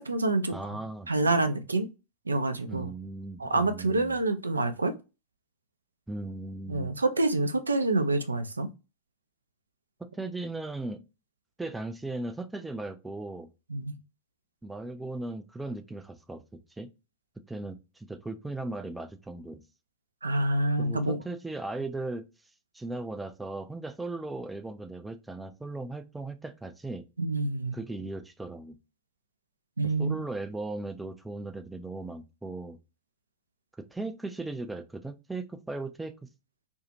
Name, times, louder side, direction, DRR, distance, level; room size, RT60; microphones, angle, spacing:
voice 1, 0.0-0.8 1.1-1.9 2.3-2.9 3.4-5.0 6.7-8.7 13.7-13.9 20.2-21.2 27.2-27.8 29.8-30.2, right 2 dB, 80° right, 0.4 m, -27 dB
voice 2, 0.5-1.1 2.7-4.2 6.1-6.9 10.1-11.0 11.6-13.5 14.6-16.4 16.8-16.9 17.5-19.6 20.8-22.3 22.7-27.0 27.7-28.8 30.0-32.8 33.8-36.3, right 2 dB, 5° right, 0.4 m, -37 dB
2.6 x 2.4 x 2.8 m
figure-of-eight pair, 90°, 0 cm